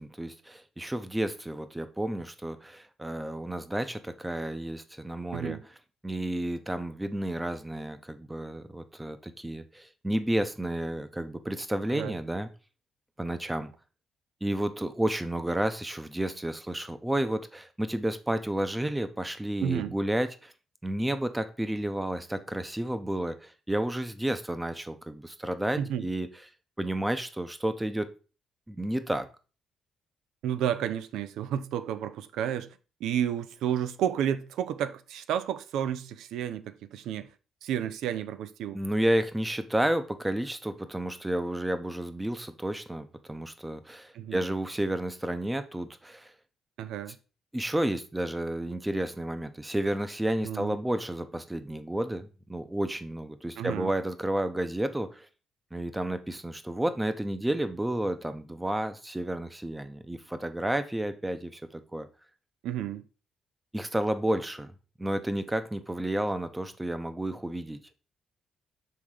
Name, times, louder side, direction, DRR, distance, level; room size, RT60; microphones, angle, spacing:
voice 1, 0.0-5.6 6.0-12.5 13.2-13.7 14.4-20.5 20.8-26.3 26.8-28.1 28.7-29.3 38.7-46.3 47.5-55.3 55.7-62.1 63.7-64.7 65.0-67.8, right 1 dB, 10° right, 0.8 m, -31 dB
voice 2, 5.3-5.6 11.9-12.2 19.6-19.9 25.8-26.1 30.4-32.7 33.0-37.3 37.6-38.8 44.1-44.4 46.8-47.2 50.4-50.8 53.6-53.9 62.6-63.0, right 10 dB, 85° right, 0.5 m, -31 dB
5.7 x 3.5 x 4.9 m
cardioid pair, 90°, 0 cm